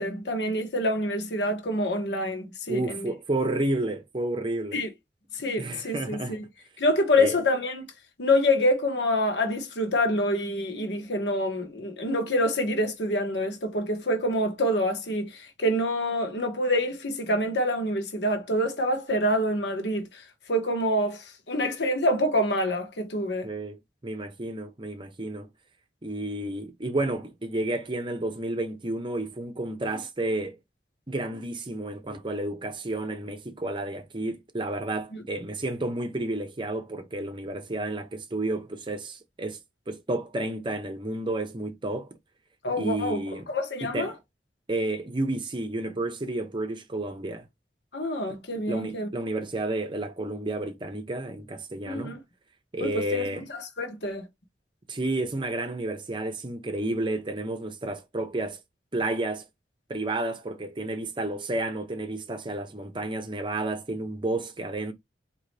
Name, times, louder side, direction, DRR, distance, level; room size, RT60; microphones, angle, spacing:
voice 1, 0.0-3.1 4.7-4.9 5.3-6.4 6.8-7.9 8.2-20.2 20.5-23.5 35.1-35.2 42.6-44.1 47.9-49.1 51.9-52.2 52.8-53.2 53.5-54.2, left 1 dB, 80° left, 1.2 m, -26 dB
voice 2, 2.7-4.8 5.6-6.4 7.2-7.4 23.4-25.5 26.0-30.6 31.1-39.6 39.9-42.2 42.8-43.5 43.8-44.2 44.7-47.5 48.7-52.2 52.7-53.4 54.9-58.6 58.9-59.5 59.9-64.9, right 2 dB, 30° right, 0.7 m, -31 dB
4.0 x 2.9 x 3.3 m
head